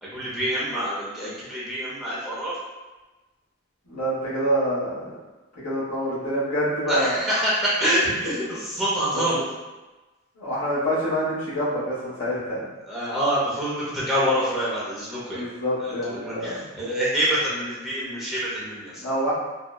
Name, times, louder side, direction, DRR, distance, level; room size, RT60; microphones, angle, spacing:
voice 1, 0.0-2.6 6.9-9.3 12.8-15.5 15.8-19.0, equal, ahead, -9 dB, 0.5 m, -26 dB
voice 2, 3.8-5.2 5.6-7.2 9.1-9.2 10.4-12.7 15.3-16.6 19.0-19.3, equal, 70° left, -8 dB, 1.1 m, -26 dB
2.7 x 2.0 x 2.2 m, 1.2 s
head